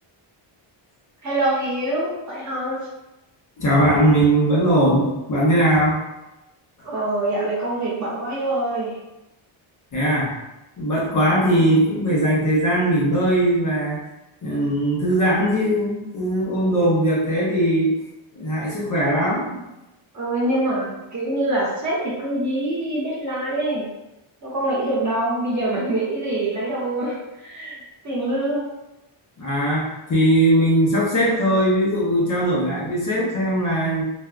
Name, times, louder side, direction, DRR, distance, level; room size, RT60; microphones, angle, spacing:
voice 1, 1.2-2.8 6.8-8.9 20.1-23.8 24.4-27.8 28.0-28.6, right 1 dB, 35° right, -6 dB, 0.8 m, -24 dB
voice 2, 3.6-6.0 9.9-10.3 10.8-14.0 14.4-17.9 18.4-19.7 29.4-34.0, right 1 dB, 40° left, -5 dB, 0.8 m, -20 dB
3.3 x 2.5 x 2.3 m, 0.95 s
wide cardioid pair, 170°, 49 cm